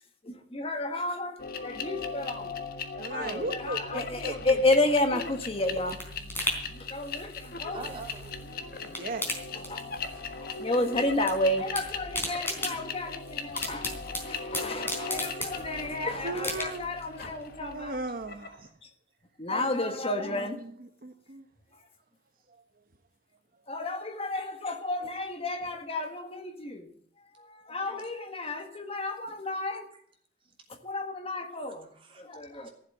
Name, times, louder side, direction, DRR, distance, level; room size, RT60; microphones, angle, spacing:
voice 1, 0.2-1.4 1.6-2.5 2.9-6.4 6.7-7.3 7.6-7.8 8.6-8.7 9.7-9.8 10.3-18.0 19.4-20.6 23.7-26.9 27.4-29.9 30.8-31.9 32.2-32.7, left 2 dB, 35° left, 1.6 m, -31 dB
sound 1, 1.4-18.6, left 4 dB, 60° left, 1.4 m, -39 dB
voice 2, 3.0-4.6 6.6-6.7 8.8-9.2 14.5-14.6 16.2-16.9 17.6-18.7 19.6-19.8 20.2-21.5 22.5-22.6, right 2 dB, 55° right, 0.9 m, -37 dB
sound 2, 5.2-8.5 8.8-10.3 10.5-11.3 11.6-15.9 16.4-17.0 17.4-17.5, left 1 dB, 15° left, 3.9 m, -36 dB
voice 3, 7.7-9.0 29.9-30.0 31.5-32.2 32.6-32.7, right 2 dB, 30° right, 3.1 m, -45 dB
15.0 x 7.6 x 9.1 m
head